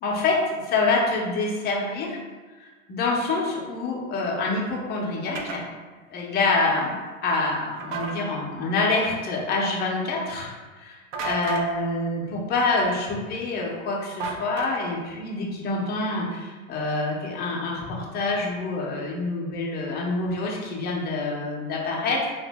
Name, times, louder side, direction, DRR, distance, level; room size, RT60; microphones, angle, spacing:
voice 1, 0.0-2.2 2.6-5.7 6.1-22.3, left 3 dB, 25° left, -2 dB, 0.6 m, -26 dB
sound 1, 5.4-5.6 7.8-8.2 11.1-11.7 14.2-15.0, right 3 dB, 60° right, 0.6 m, -31 dB
2.9 x 2.6 x 3.3 m, 1.3 s
hypercardioid pair, 125°, 42 cm